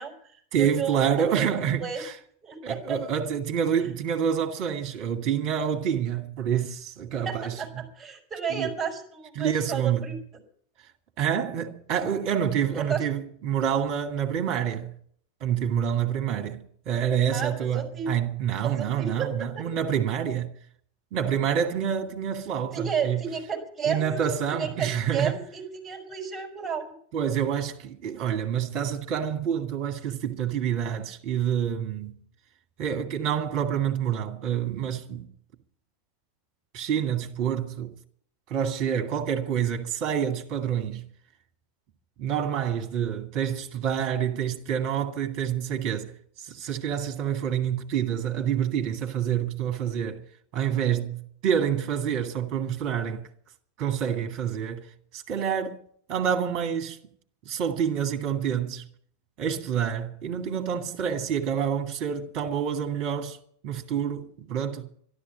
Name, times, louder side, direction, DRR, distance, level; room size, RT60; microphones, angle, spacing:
voice 1, 0.0-2.0 2.4-3.0 7.3-10.2 12.8-13.0 17.3-18.1 18.6-19.7 22.7-26.9, right 7 dB, 15° right, 5.2 m, -32 dB
voice 2, 0.5-2.2 2.6-7.8 8.5-8.7 9.4-10.1 11.2-14.9 15.4-20.5 21.1-23.2 23.8-25.4 27.1-32.2 32.8-35.3 36.7-37.9 38.5-41.1 42.2-46.1 46.4-50.2 50.5-53.3 53.8-54.9 55.1-55.8 56.1-57.0 57.5-58.8 59.4-63.4 63.6-64.9, right 8 dB, 40° right, 1.9 m, -27 dB
12.5 x 12.0 x 8.5 m
figure-of-eight pair, 85°, 0 cm